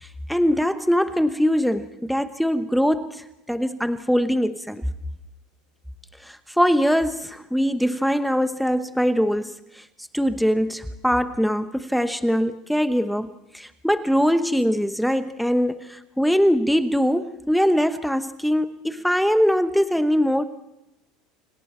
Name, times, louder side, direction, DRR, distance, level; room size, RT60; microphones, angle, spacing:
voice 1, 0.0-4.8 6.2-9.8 10.1-20.5, equal, ahead, 10 dB, 1.0 m, -22 dB
29.5 x 26.0 x 4.4 m, 0.92 s
supercardioid pair, 110°, 0 cm